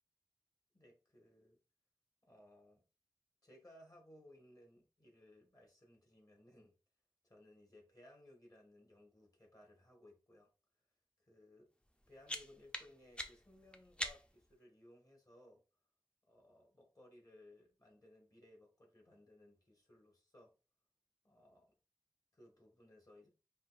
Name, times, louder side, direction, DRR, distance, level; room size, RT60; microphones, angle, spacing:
voice 1, 0.7-1.6 2.2-2.8 3.4-6.7 7.2-10.5 11.2-11.7 12.1-15.6 16.3-20.5 21.2-21.7 22.3-23.3, left 1 dB, 40° left, 0 dB, 1.5 m, -62 dB
sound 1, 11.8-14.5, left 1 dB, 10° left, 0.5 m, -46 dB
5.3 x 2.3 x 2.5 m, 0.32 s
wide cardioid pair, 45°, 9 cm